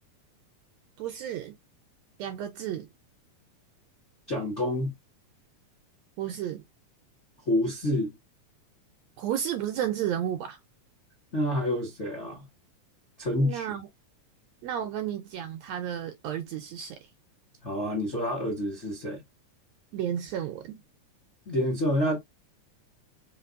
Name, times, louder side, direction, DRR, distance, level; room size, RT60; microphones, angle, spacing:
voice 1, 1.0-1.5 2.2-2.9 6.2-6.6 9.2-10.6 13.4-13.9 14.6-17.0 19.9-20.8, right 10 dB, 75° right, 1.6 m, -32 dB
voice 2, 4.3-4.9 7.5-8.1 11.3-12.5 13.2-13.8 17.6-19.2 21.5-22.2, left 1 dB, 45° left, 0.9 m, -28 dB
5.1 x 2.6 x 2.5 m
omnidirectional pair, 3.6 m